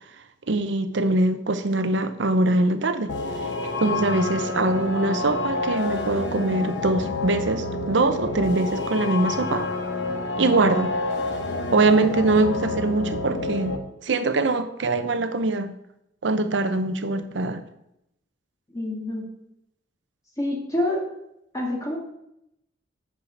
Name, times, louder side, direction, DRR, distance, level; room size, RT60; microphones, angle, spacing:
voice 1, 0.5-3.1 3.8-9.7 10.4-10.9 11.7-13.7 14.0-15.7 16.2-17.6, right 2 dB, 75° right, 10 dB, 0.7 m, -23 dB
sound 1, 3.1-13.8, left 3 dB, 70° left, 0.9 m, -29 dB
voice 2, 18.7-19.3 20.4-21.0 21.5-22.0, left 1 dB, 20° left, -2 dB, 1.9 m, -27 dB
7.1 x 5.0 x 6.8 m, 0.82 s
head